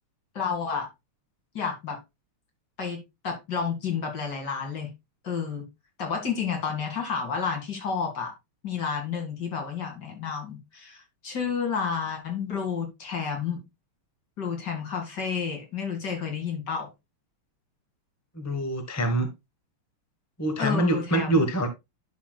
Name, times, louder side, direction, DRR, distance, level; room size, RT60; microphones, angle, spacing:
voice 1, 0.3-0.9 1.5-2.0 2.8-4.9 5.2-5.6 6.0-8.3 8.6-13.6 14.4-16.9 20.6-21.4, left 6 dB, 50° left, 2.8 m, -30 dB
voice 2, 18.3-19.3 20.4-21.7, right 1 dB, 15° left, 0.7 m, -25 dB
11.5 x 6.0 x 2.3 m
omnidirectional pair, 2.4 m